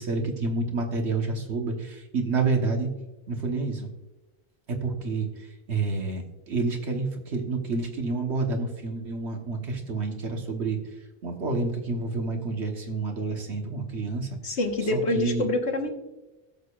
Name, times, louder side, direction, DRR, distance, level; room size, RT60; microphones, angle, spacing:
voice 1, 0.0-2.9 3.3-3.9 4.7-10.8 11.2-14.3 14.9-15.4, right 3 dB, 75° right, 3 dB, 1.5 m, -29 dB
voice 2, 14.4-16.0, left 2 dB, 75° left, 2 dB, 1.6 m, -26 dB
18.5 x 6.5 x 2.4 m, 1.1 s
omnidirectional pair, 1.1 m